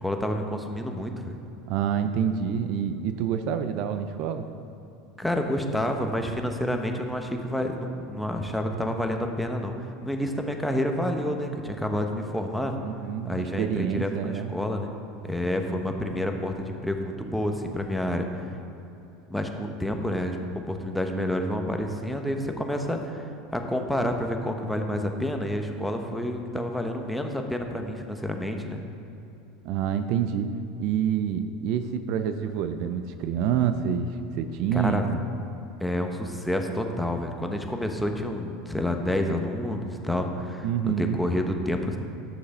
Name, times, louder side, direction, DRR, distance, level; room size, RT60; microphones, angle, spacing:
voice 1, 0.0-1.3 5.2-12.7 13.2-14.9 15.2-18.3 19.3-20.4 20.7-28.8 34.7-35.0 35.8-42.0, left 1 dB, 5° left, 4 dB, 1.1 m, -29 dB
voice 2, 1.7-4.4 12.8-14.5 29.6-30.5 30.8-35.2 40.6-41.2, right 8 dB, 60° right, 9 dB, 0.5 m, -27 dB
10.5 x 6.6 x 5.4 m, 2.9 s
hypercardioid pair, 90°, 0 cm